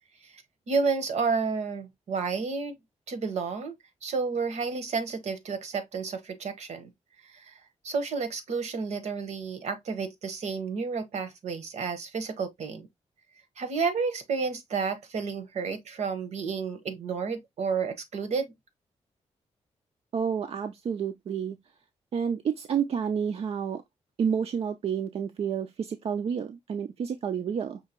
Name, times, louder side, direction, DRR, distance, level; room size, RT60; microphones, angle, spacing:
voice 1, 0.2-2.8 3.1-3.7 4.0-6.9 7.2-7.6 7.8-12.9 13.6-18.5, right 5 dB, 75° right, 1.1 m, -31 dB
voice 2, 20.1-21.6 22.1-23.8 24.2-27.8, right 7 dB, 60° right, 0.5 m, -30 dB
5.6 x 2.9 x 2.9 m
wide cardioid pair, 120°, 12 cm